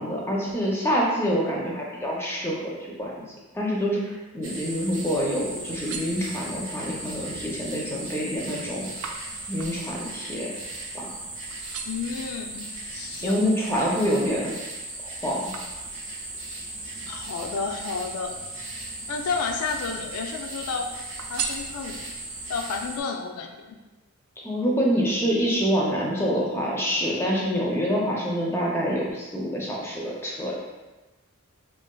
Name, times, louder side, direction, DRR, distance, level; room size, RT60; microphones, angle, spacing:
voice 1, 0.0-3.1 3.5-8.9 9.5-10.6 10.9-11.1 13.2-14.5 15.0-15.5 24.4-30.5, equal, 10° left, -3 dB, 0.4 m, -26 dB
sound 1, 4.4-23.0, right 2 dB, 60° right, 0.7 m, -37 dB
sound 2, 5.6-6.8 7.3-7.7 8.1-11.2 11.5-12.2 12.8-14.3 14.7-16.3 17.2-18.3 18.8-19.6 20.0-20.7 21.2-22.2 22.8-22.9, right 6 dB, 80° right, 0.3 m, -40 dB
voice 2, 11.8-13.5 17.1-18.4 19.1-21.0 21.3-22.1 22.5-23.8, left 5 dB, 85° left, 4 dB, 0.4 m, -31 dB
3.8 x 2.4 x 2.2 m, 1.2 s
head